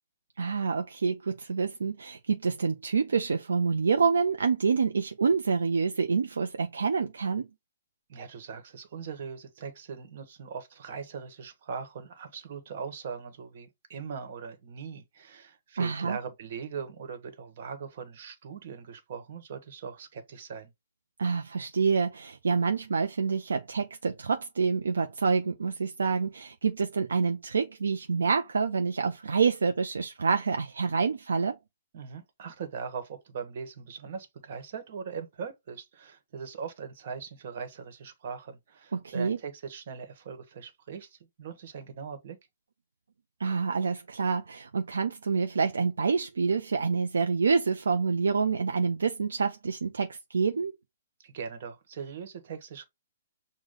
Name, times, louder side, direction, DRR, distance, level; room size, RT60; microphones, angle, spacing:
voice 1, 0.4-7.5 15.8-16.2 21.2-31.6 38.9-39.4 43.4-50.7, right 5 dB, 75° right, 0.4 m, -27 dB
voice 2, 8.1-20.7 31.9-42.4 51.2-52.9, right 6 dB, 55° right, 1.2 m, -40 dB
6.3 x 2.2 x 3.7 m
figure-of-eight pair, 125°, 0 cm